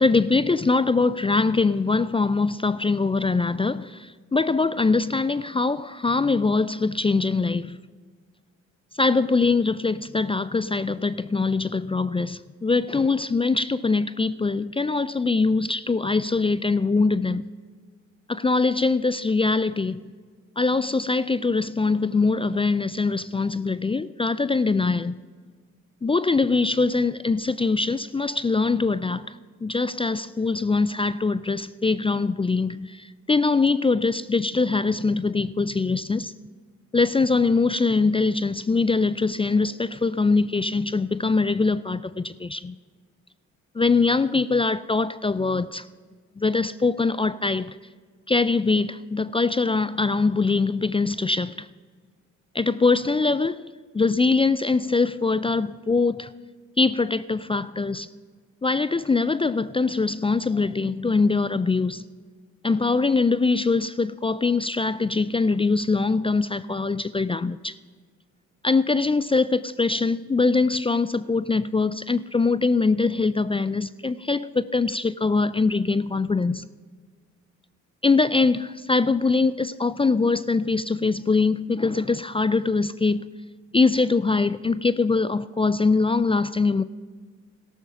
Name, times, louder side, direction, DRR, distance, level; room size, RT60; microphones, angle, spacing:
voice 1, 0.0-7.8 9.0-17.5 18.3-20.0 20.6-25.2 26.0-29.4 29.6-36.3 36.9-42.8 43.7-45.9 46.4-47.8 48.3-51.7 52.5-53.6 53.9-56.3 56.8-58.1 58.6-62.0 62.6-67.7 68.6-76.7 78.0-83.2 83.7-86.8, left 3 dB, 15° left, 0.4 m, -23 dB
13.5 x 12.5 x 5.7 m
hypercardioid pair, 45°, 37 cm